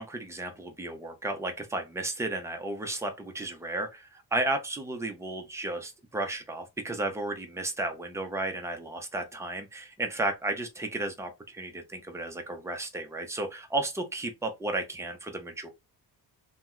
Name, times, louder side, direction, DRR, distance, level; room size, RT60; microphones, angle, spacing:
voice 1, 0.0-15.7, right 2 dB, 5° right, 0.5 m, -33 dB
2.9 x 2.0 x 3.7 m
cardioid pair, 155°, 38 cm